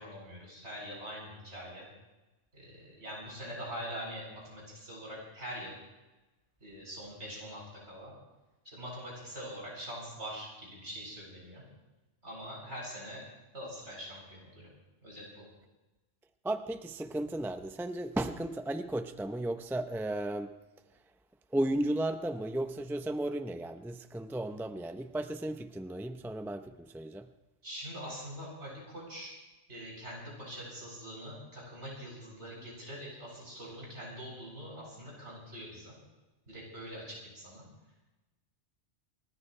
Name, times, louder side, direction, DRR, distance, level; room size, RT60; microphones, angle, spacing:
voice 1, 0.0-1.9 2.5-5.7 6.6-8.1 8.6-11.6 12.2-13.2 13.5-14.7 15.0-15.5 27.6-29.3 29.7-35.9 36.5-37.7, equal, 70° right, -4 dB, 8.4 m, -43 dB
voice 2, 16.4-20.6 21.5-27.3, right 1 dB, ahead, 8 dB, 0.6 m, -34 dB
29.0 x 14.5 x 3.3 m, 1.1 s
omnidirectional pair, 1.2 m